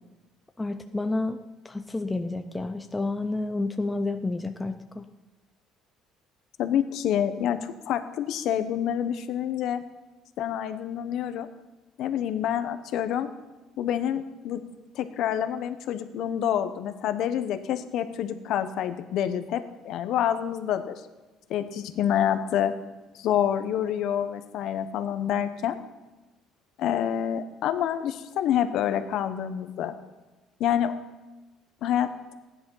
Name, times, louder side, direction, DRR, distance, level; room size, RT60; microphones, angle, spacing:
voice 1, 0.6-1.4 1.6-5.1, left 2 dB, 10° left, 6 dB, 0.5 m, -30 dB
voice 2, 6.6-9.8 10.4-11.5 12.0-13.3 13.8-14.6 14.9-21.0 21.5-22.7 23.1-25.8 26.8-30.0 30.6-30.9 31.8-32.3, left 10 dB, 55° left, 10 dB, 1.0 m, -27 dB
15.5 x 10.5 x 5.6 m, 1.1 s
cardioid pair, 170°, 0 cm